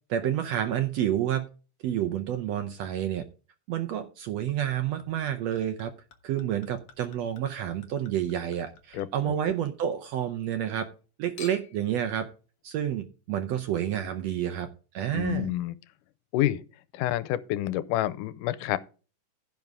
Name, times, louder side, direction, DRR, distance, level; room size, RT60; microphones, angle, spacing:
voice 1, 0.1-1.5 1.8-3.2 3.7-5.9 6.2-10.9 11.2-12.3 12.6-14.7 14.9-15.5, right 10 dB, 75° right, 1.6 m, -29 dB
Chink clink / Liquid, 4.5-10.0 10.3-11.0 11.4-11.9 12.6-12.7, left 6 dB, 60° left, 1.7 m, -52 dB
voice 2, 8.9-9.4 15.1-15.8 16.3-16.6 16.9-18.8, left 14 dB, 85° left, 2.2 m, -28 dB
15.5 x 5.3 x 3.6 m
omnidirectional pair, 3.6 m